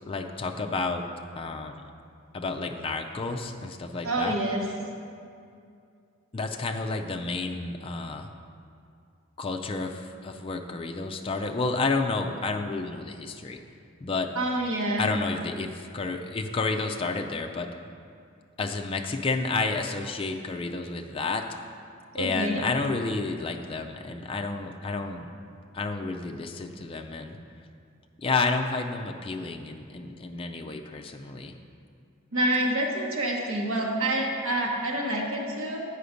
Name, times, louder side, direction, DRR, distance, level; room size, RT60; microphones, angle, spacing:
voice 1, 0.1-1.0 1.4-1.8 2.3-4.3 6.3-8.3 9.4-13.6 14.0-14.3 15.0-17.7 18.6-21.4 22.1-25.3 25.7-27.4 28.2-31.5, left 3 dB, 25° left, 3 dB, 0.4 m, -30 dB
voice 2, 4.0-4.6 14.3-15.1 22.2-22.6 32.3-35.8, right 1 dB, 90° right, 0 dB, 1.1 m, -27 dB
8.1 x 5.0 x 5.1 m, 2.4 s
head